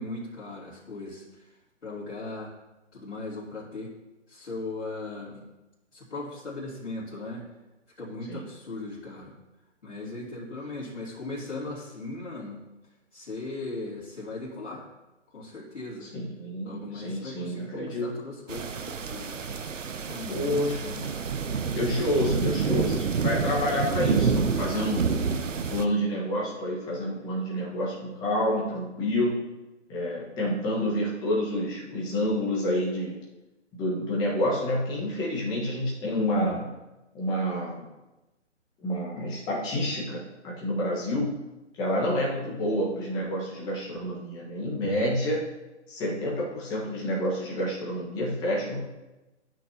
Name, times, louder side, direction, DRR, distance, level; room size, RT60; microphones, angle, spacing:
voice 1, 0.0-1.5 1.8-2.5 2.9-3.9 4.3-5.5 5.9-7.5 8.0-9.3 9.8-12.6 13.1-14.9 15.3-16.1 16.6-19.4 20.0-21.2 21.7-22.3, left 2 dB, 70° left, -10 dB, 3.2 m, -38 dB
voice 2, 16.0-18.2 20.3-21.0 21.7-25.1 25.5-29.4 29.9-33.2 33.8-36.7 37.1-37.9 38.8-41.4 41.8-45.4 45.9-48.8, equal, 10° left, -5 dB, 1.4 m, -28 dB
sound 1, 18.5-25.9, right 5 dB, 90° right, 0.7 m, -28 dB
13.0 x 6.1 x 2.9 m, 1.0 s
figure-of-eight pair, 150°, 37 cm